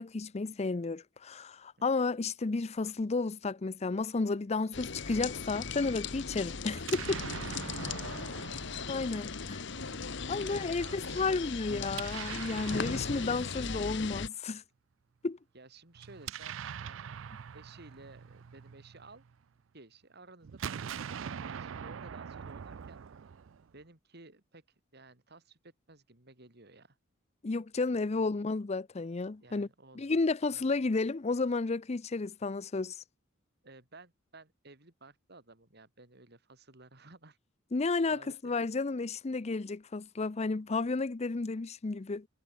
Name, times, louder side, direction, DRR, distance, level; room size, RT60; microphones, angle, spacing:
voice 1, 0.0-7.2 8.9-9.6 10.3-14.6 15.2-15.4 27.4-29.7 30.0-33.0 37.7-42.3, left 3 dB, 35° left, 0.5 m, -32 dB
sound 1, 4.7-14.3, left 5 dB, 65° left, 1.2 m, -38 dB
Explosion, 6.7-9.7 11.8-14.1 15.9-19.4 20.4-23.8, right 8 dB, 75° right, 0.4 m, -43 dB
voice 2, 7.8-8.7 9.1-9.4 9.7-11.6 15.5-19.2 19.7-23.0 23.7-24.6 24.9-27.0 28.0-28.2 29.4-30.2 30.5-30.7 33.6-37.4 38.1-38.5, right 3 dB, 55° right, 3.6 m, -55 dB
head